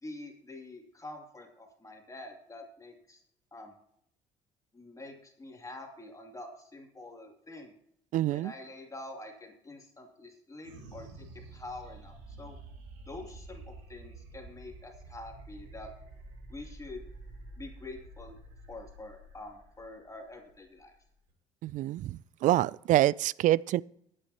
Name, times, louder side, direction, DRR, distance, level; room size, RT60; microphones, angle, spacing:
voice 1, 0.0-3.2 3.5-3.7 4.7-7.7 8.3-11.1 11.5-12.6 13.1-15.9 16.5-17.0 17.6-18.4 18.7-20.9, left 2 dB, 20° left, 2.7 m, -46 dB
voice 2, 8.1-8.5 21.6-23.8, right 14 dB, 60° right, 0.4 m, -26 dB
sound 1, 10.6-21.3, right 2 dB, 85° right, 3.4 m, -49 dB
20.0 x 8.8 x 2.9 m
hypercardioid pair, 65°, 15 cm